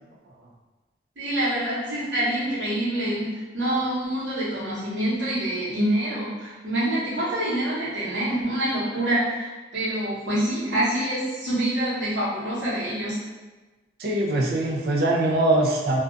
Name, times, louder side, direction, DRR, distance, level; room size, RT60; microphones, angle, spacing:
voice 1, 1.2-13.2, right 1 dB, 75° right, -9 dB, 1.0 m, -26 dB
voice 2, 14.0-16.0, right 1 dB, 60° right, -1 dB, 0.4 m, -22 dB
2.4 x 2.2 x 2.5 m, 1.2 s
head